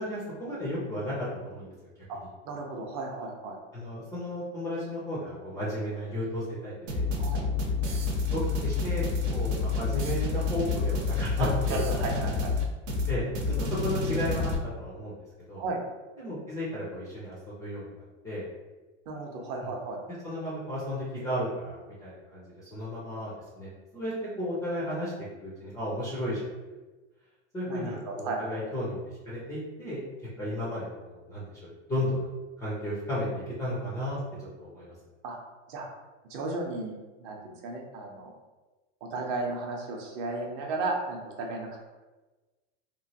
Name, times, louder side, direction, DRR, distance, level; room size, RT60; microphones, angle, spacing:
voice 1, 0.0-1.7 3.7-7.1 8.3-11.8 13.1-13.5 13.8-15.2 15.5-15.6 16.2-18.4 19.6-19.7 20.2-25.1 25.4-26.5 27.5-29.0 29.2-30.0 30.4-32.3 32.6-34.2 34.6-34.9, left 1 dB, 10° left, -8 dB, 0.3 m, -34 dB
voice 2, 2.4-3.6 7.2-7.5 11.4-12.5 15.6-15.8 19.1-20.0 27.7-28.6 35.2-35.4 35.7-35.9 36.3-36.9 37.2-38.3 39.0-41.8, right 3 dB, 45° right, 1 dB, 0.6 m, -34 dB
sound 1, 6.9-14.6, left 4 dB, 80° right, 0.8 m, -29 dB
3.0 x 2.5 x 2.7 m, 1.2 s
supercardioid pair, 145°, 37 cm